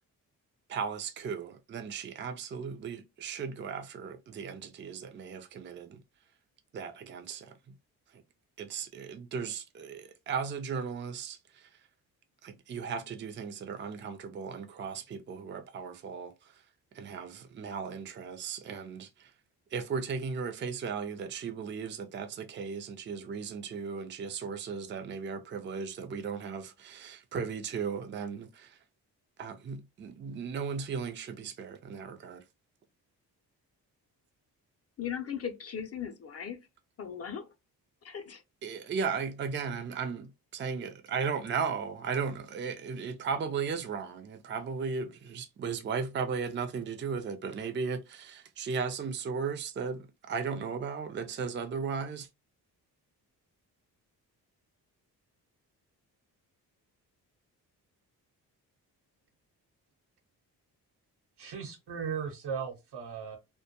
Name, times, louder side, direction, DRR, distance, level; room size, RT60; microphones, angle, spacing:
voice 1, 0.7-6.0 6.7-7.8 8.1-8.2 8.6-11.8 12.4-16.6 16.9-19.3 19.7-28.8 29.4-32.4 38.6-52.3, right 5 dB, 30° right, 0.4 m, -36 dB
voice 2, 35.0-36.6 37.0-37.5 38.0-38.4, left 8 dB, 40° left, 0.5 m, -38 dB
voice 3, 61.4-63.4, right 6 dB, 75° right, 0.9 m, -37 dB
2.2 x 2.1 x 2.7 m
supercardioid pair, 60°, 40 cm